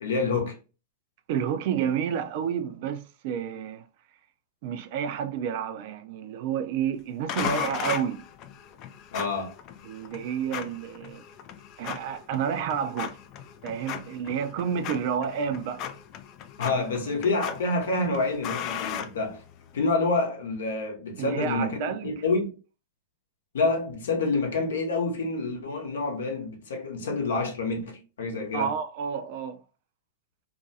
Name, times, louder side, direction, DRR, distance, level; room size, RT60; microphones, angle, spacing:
voice 1, 0.0-0.6 9.1-9.5 16.6-19.4 19.7-22.5 23.5-28.7, left 3 dB, 70° left, 0.8 m, -27 dB
voice 2, 1.3-3.9 4.6-8.3 9.8-11.2 11.8-13.2 13.6-15.9 21.2-22.2 28.5-29.6, right 8 dB, 55° right, 0.4 m, -30 dB
sound 1, 7.3-19.8, left 9 dB, 40° left, 0.3 m, -37 dB
2.4 x 2.2 x 2.6 m
figure-of-eight pair, 100°, 0 cm